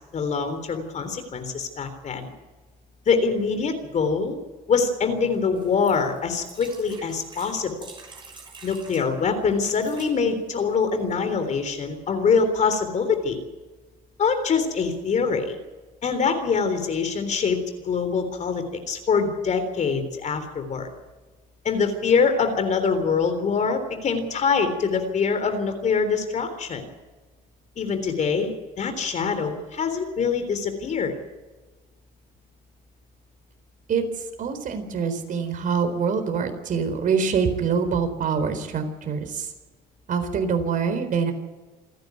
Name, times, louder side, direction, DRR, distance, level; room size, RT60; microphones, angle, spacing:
voice 1, 0.1-2.3 3.1-4.4 4.7-7.9 8.6-13.4 14.2-15.6 16.0-17.6 17.8-20.9 21.6-26.9 27.8-31.1, left 5 dB, 45° left, 8 dB, 3.6 m, -24 dB
sound 1, 5.6-9.1 9.6-10.1 10.8-10.9 11.1-11.2, right 4 dB, 30° right, 6.7 m, -46 dB
voice 2, 34.4-39.5 40.1-41.3, right 6 dB, 50° right, 7 dB, 4.1 m, -25 dB
28.0 x 10.5 x 9.3 m, 1.3 s
cardioid pair, 110°, 17 cm